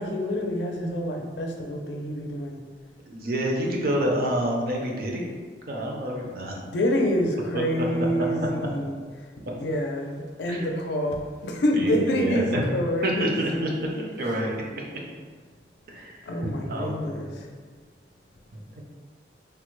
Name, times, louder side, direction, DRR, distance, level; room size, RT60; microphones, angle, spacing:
voice 1, 0.0-2.6 6.7-9.0 9.5-13.8 16.3-17.5, equal, 70° left, 2 dB, 0.4 m, -27 dB
voice 2, 3.1-5.2 5.7-6.6 7.5-7.9 10.5-10.7 11.7-12.6 13.0-13.9 14.2-14.8 15.9-16.2 16.7-17.3 18.8-18.9, equal, 55° right, -1 dB, 0.5 m, -28 dB
3.4 x 2.1 x 3.0 m, 1.5 s
head